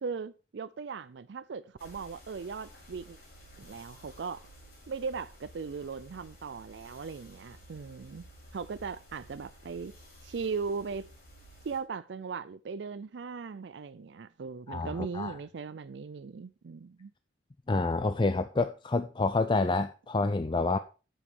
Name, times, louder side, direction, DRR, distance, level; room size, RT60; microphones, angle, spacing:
voice 1, 0.0-3.2 3.6-4.4 4.9-8.2 8.5-9.9 10.2-11.1 11.6-17.1, right 5 dB, 75° right, 0.4 m, -38 dB
sound 1, 1.8-11.8, equal, 60° left, 5.4 m, -53 dB
voice 2, 14.7-15.4 17.7-20.8, left 3 dB, 25° left, 0.4 m, -28 dB
8.6 x 7.2 x 4.5 m
head